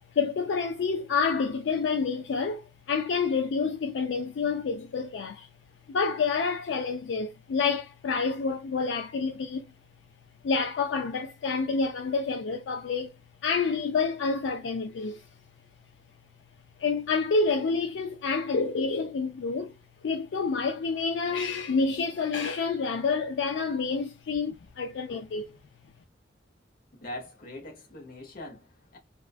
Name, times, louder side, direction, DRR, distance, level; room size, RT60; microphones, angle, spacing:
voice 1, 0.1-5.5 5.9-9.7 10.4-13.1 13.4-15.2 16.8-19.8 20.0-25.6, left 4 dB, 75° left, 0.4 m, -28 dB
voice 2, 27.0-29.0, left 1 dB, 50° left, 0.9 m, -42 dB
2.4 x 2.2 x 2.4 m
head